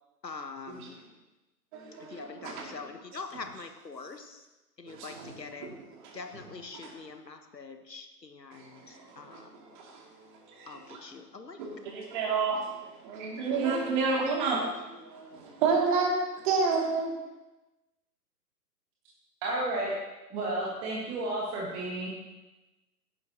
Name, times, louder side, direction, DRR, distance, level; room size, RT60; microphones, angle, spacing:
voice 1, 0.2-1.0 2.0-4.4 4.8-5.7 6.1-9.5 10.7-11.6, left 4 dB, 80° left, 7 dB, 1.3 m, -44 dB
voice 2, 1.7-2.7 4.9-5.3 5.6-5.7 6.0-6.2 6.8-6.9 8.5-9.4 9.7-10.0 10.5-11.0 11.6-16.1 16.4-17.1, right 4 dB, 30° right, 0 dB, 2.5 m, -30 dB
voice 3, 19.4-19.9 20.3-22.1, right 2 dB, 10° right, -3 dB, 0.8 m, -32 dB
16.5 x 10.5 x 2.9 m, 1.1 s
figure-of-eight pair, 125°, 49 cm